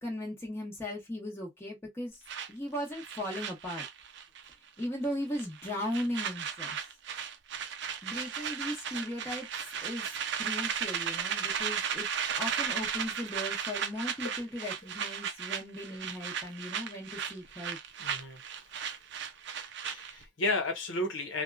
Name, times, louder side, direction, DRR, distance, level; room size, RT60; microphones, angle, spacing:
voice 1, 0.0-2.2 2.5-3.8 4.8-6.8 8.0-9.5 9.8-12.1 12.4-17.8, left 1 dB, 15° left, 0.9 m, -37 dB
sound 1, 2.3-4.5 4.8-5.1 5.4-20.3, right 7 dB, 65° right, 0.5 m, -35 dB
voice 2, 18.0-18.4 19.8-21.4, left 2 dB, 85° left, 0.9 m, -32 dB
2.8 x 2.3 x 2.3 m
head